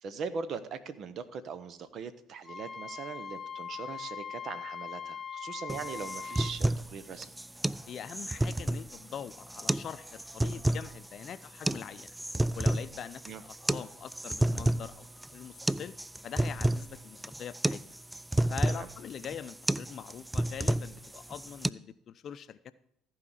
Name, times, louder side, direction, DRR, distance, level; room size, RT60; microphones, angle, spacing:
voice 1, 0.0-7.3 13.3-13.4 18.7-18.9, right 5 dB, 50° right, 14 dB, 0.9 m, -40 dB
Wind instrument woodwind instrument, 2.4-6.6, left 7 dB, 25° left, 1.0 m, -41 dB
sound 1, 5.7-21.7, right 1 dB, 10° right, 0.3 m, -31 dB
voice 2, 7.9-12.2 12.5-15.9 16.2-17.8 18.5-22.7, left 8 dB, 50° left, 14 dB, 0.6 m, -43 dB
14.5 x 4.9 x 7.4 m, 0.72 s
hypercardioid pair, 55°, 0 cm